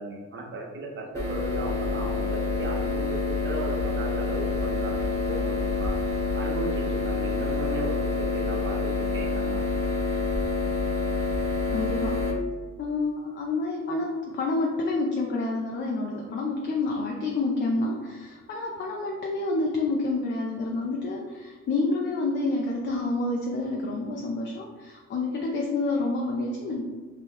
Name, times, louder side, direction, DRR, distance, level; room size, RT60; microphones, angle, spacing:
voice 1, 0.0-6.0 6.3-9.7, right 2 dB, 40° right, -1 dB, 0.8 m, -36 dB
sound 1, 1.1-12.3, left 3 dB, 10° left, 0.9 m, -27 dB
voice 2, 11.7-12.2 12.8-26.8, left 2 dB, 40° left, 0 dB, 0.4 m, -28 dB
2.9 x 2.2 x 3.5 m, 1.4 s
cardioid pair, 90°, 30 cm